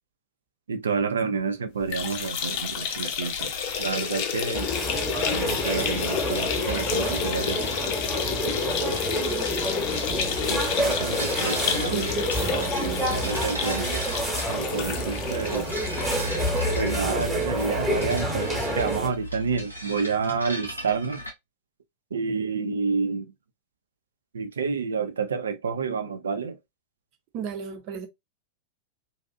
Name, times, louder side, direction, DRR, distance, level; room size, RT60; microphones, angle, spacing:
voice 1, 0.7-4.7 5.3-7.6 10.5-12.1 13.1-14.0 14.5-15.9 16.8-21.2 22.1-23.3 24.3-26.6, right 5 dB, 70° right, 0.5 m, -29 dB
sound 1, 1.8-17.2 17.6-17.7 18.0-18.1 19.1-19.2, left 8 dB, 45° left, 0.4 m, -30 dB
sound 2, 2.1-21.3, equal, 90° left, 0.8 m, -37 dB
sound 3, 4.5-19.1, right 1 dB, 5° right, 1.1 m, -28 dB
voice 2, 11.9-13.5 27.3-28.1, right 7 dB, 40° right, 0.8 m, -35 dB
2.6 x 2.4 x 2.5 m
figure-of-eight pair, 90°, 0 cm